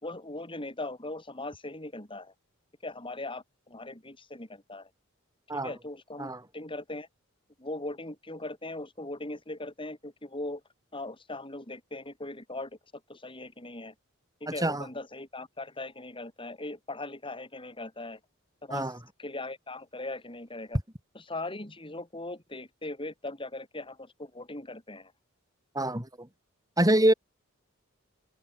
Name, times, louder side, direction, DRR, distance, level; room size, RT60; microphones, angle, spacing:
voice 1, 0.0-2.3 2.8-4.9 5.5-7.1 7.6-10.6 10.9-12.7 13.1-13.9 14.4-18.2 18.6-18.9 19.2-20.8 21.1-25.1, left 2 dB, 25° left, 6.1 m, -39 dB
voice 2, 14.5-14.9 18.7-19.0 25.7-26.3 26.8-27.1, right 1 dB, 15° right, 5.5 m, -25 dB
open air
head